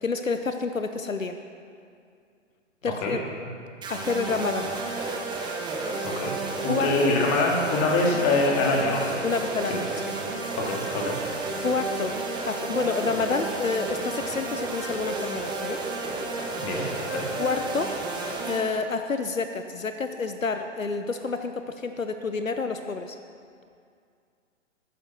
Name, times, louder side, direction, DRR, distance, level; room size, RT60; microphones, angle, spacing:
voice 1, 0.0-1.4 2.8-3.2 3.9-4.7 6.7-7.1 9.2-9.9 11.6-12.2 12.4-15.8 17.4-18.0 18.4-23.2, left 4 dB, 90° left, 8 dB, 0.8 m, -28 dB
sound 1, 3.8-18.6, right 3 dB, 10° right, 1.3 m, -32 dB
voice 2, 6.0-6.4 6.6-9.0 9.7-9.8 10.6-11.2 16.6-17.3, left 2 dB, 30° left, -1 dB, 2.3 m, -24 dB
12.5 x 9.5 x 5.8 m, 2.3 s
figure-of-eight pair, 120°, 38 cm